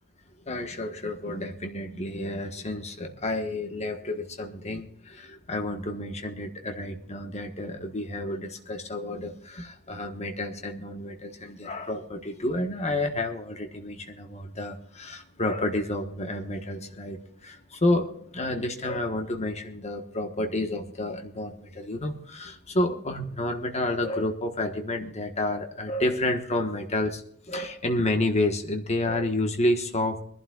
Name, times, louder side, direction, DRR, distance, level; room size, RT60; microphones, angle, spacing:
voice 1, 0.5-27.2 27.5-30.2, left 1 dB, 30° left, 5 dB, 1.4 m, -30 dB
24.0 x 11.5 x 2.4 m, 0.63 s
head